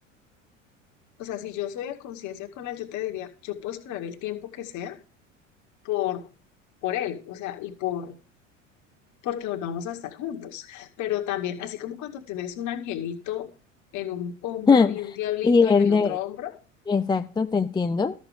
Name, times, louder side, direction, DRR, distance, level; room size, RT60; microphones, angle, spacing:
voice 1, 1.2-5.0 5.8-6.3 6.8-8.2 9.2-13.5 13.9-16.6, left 12 dB, 50° left, 5 dB, 2.0 m, -32 dB
voice 2, 15.4-16.2 16.9-18.1, left 5 dB, 10° left, 8 dB, 0.6 m, -20 dB
13.5 x 7.2 x 5.0 m, 0.35 s
hypercardioid pair, 75°, 38 cm